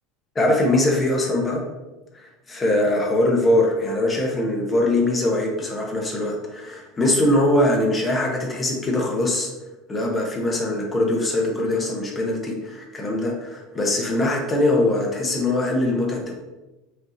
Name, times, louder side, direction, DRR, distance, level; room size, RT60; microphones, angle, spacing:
voice 1, 0.3-1.6 2.5-9.5 9.9-16.4, left 1 dB, 20° left, 0 dB, 0.9 m, -22 dB
5.2 x 2.8 x 2.5 m, 1.1 s
supercardioid pair, 115°, 0 cm